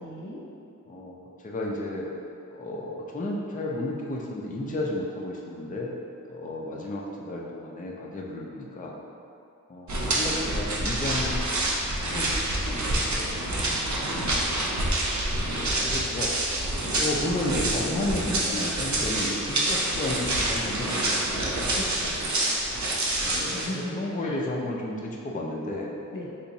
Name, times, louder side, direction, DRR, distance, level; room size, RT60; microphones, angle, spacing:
voice 1, 0.0-0.4 13.3-14.5 21.7-22.2 23.5-24.4 26.1-26.3, equal, 75° left, -4 dB, 0.6 m, -38 dB
voice 2, 0.9-2.1 2.5-5.9 6.3-8.9 9.7-11.7 12.0-13.4 15.4-16.3 16.9-21.5 23.2-25.9, left 1 dB, 25° left, -2 dB, 0.4 m, -33 dB
sound 1, 9.9-23.7, right 1 dB, 60° right, 0.6 m, -27 dB
3.3 x 2.9 x 2.7 m, 2.6 s
wide cardioid pair, 45°, 32 cm